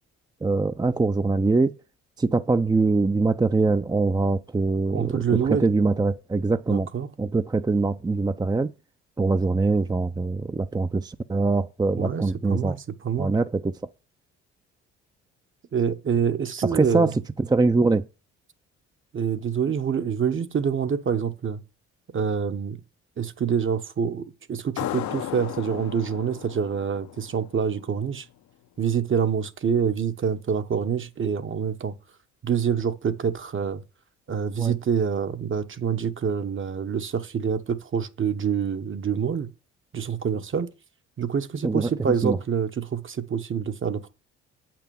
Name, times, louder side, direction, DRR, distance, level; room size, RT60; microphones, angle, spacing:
voice 1, 0.4-1.7 2.2-5.2 5.6-6.9 7.2-8.7 9.2-12.8 13.2-13.7 16.7-17.1 17.4-18.1 34.6-34.7 41.6-41.9 42.2-42.4, right 3 dB, 15° right, 0.6 m, -23 dB
voice 2, 4.9-5.7 6.7-7.1 11.9-13.3 15.7-17.1 19.1-21.6 22.1-22.8 23.2-28.3 28.8-31.9 32.4-33.8 34.3-39.5 39.9-40.7 41.2-44.1, right 7 dB, 40° right, 1.2 m, -26 dB
sound 1, 24.8-28.1, left 12 dB, 60° left, 0.8 m, -35 dB
8.3 x 5.9 x 7.0 m
supercardioid pair, 70°, 31 cm